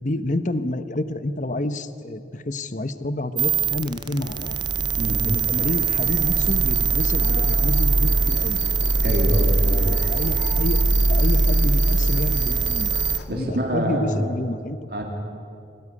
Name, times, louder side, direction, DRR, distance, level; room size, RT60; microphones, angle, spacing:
voice 1, 0.0-4.6 5.2-8.6 9.7-12.9 13.3-14.8, left 1 dB, 45° left, 11 dB, 1.0 m, -29 dB
sound 1, 3.4-13.2, right 4 dB, 25° right, 0.5 m, -21 dB
sound 2, 3.8-13.3, left 3 dB, 80° left, 2.0 m, -38 dB
voice 2, 9.0-10.0 13.3-14.2 14.9-15.0, equal, 55° right, 0 dB, 2.6 m, -26 dB
23.5 x 17.5 x 9.8 m, 2.6 s
head